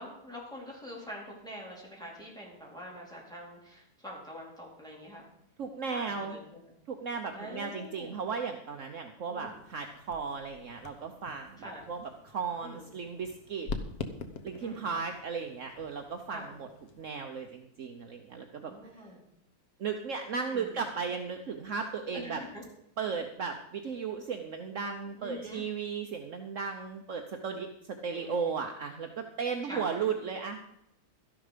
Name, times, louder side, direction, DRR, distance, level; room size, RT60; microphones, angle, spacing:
voice 1, 0.0-5.3 5.9-6.6 7.3-8.2 9.3-9.6 11.6-11.8 12.6-12.9 14.6-15.0 16.3-16.5 18.6-19.2 20.5-20.8 22.1-22.6 25.2-25.6 28.1-28.5 29.6-29.9, equal, ahead, -4 dB, 4.2 m, -45 dB
voice 2, 5.6-6.4 6.9-13.7 14.4-16.7 17.0-18.7 19.8-22.4 23.0-30.6, right 5 dB, 60° right, 4 dB, 1.2 m, -35 dB
sound 1, 9.4-17.1, left 4 dB, 75° left, 1.6 m, -45 dB
13.0 x 11.0 x 5.1 m, 0.78 s
omnidirectional pair, 1.6 m